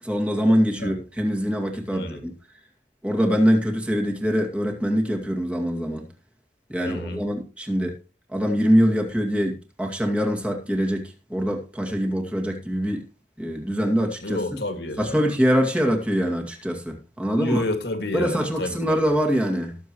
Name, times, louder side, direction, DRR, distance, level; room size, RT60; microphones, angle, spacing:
voice 1, 0.0-2.3 3.0-6.0 6.7-7.9 8.3-11.0 11.3-13.0 13.4-14.4 15.0-17.6 18.1-19.8, equal, 5° right, 2.2 m, -23 dB
voice 2, 1.9-2.2 6.8-7.2 14.2-15.2 17.4-19.0, left 1 dB, 65° left, 2.2 m, -29 dB
19.0 x 7.3 x 3.1 m
head